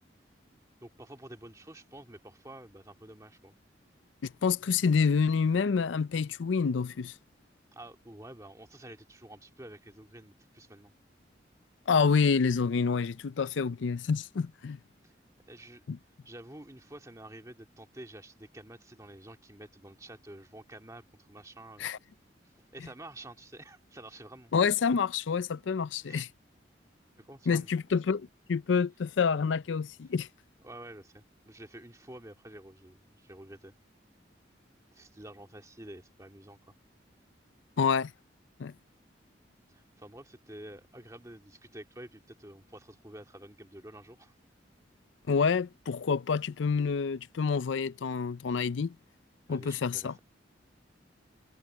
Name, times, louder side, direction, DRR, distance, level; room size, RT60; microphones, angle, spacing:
voice 1, 0.5-3.5 7.7-10.9 15.0-15.1 15.4-15.8 16.2-21.0 21.3-21.9 22.4-24.5 26.0-26.2 27.2-27.7 30.6-33.7 34.9-36.6 39.7-44.3 49.5-50.2, right 1 dB, 20° right, 2.0 m, -49 dB
voice 2, 4.2-7.1 11.9-14.8 15.9-16.0 21.8-22.0 24.5-26.3 27.5-30.3 37.8-38.1 38.6-38.7 45.3-48.9 49.5-50.1, left 5 dB, 85° left, 0.5 m, -28 dB
head